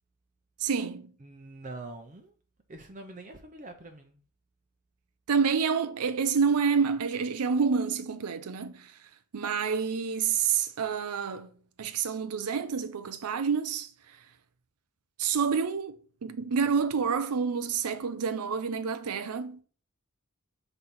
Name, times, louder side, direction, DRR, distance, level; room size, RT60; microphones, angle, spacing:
voice 1, 0.6-1.1 5.3-8.9 9.3-11.5 11.8-13.9 15.2-16.0 16.2-19.6, right 6 dB, 85° right, 0.5 m, -28 dB
voice 2, 1.2-2.3 2.7-4.2, right 2 dB, 35° right, 0.6 m, -44 dB
6.0 x 4.0 x 5.5 m
head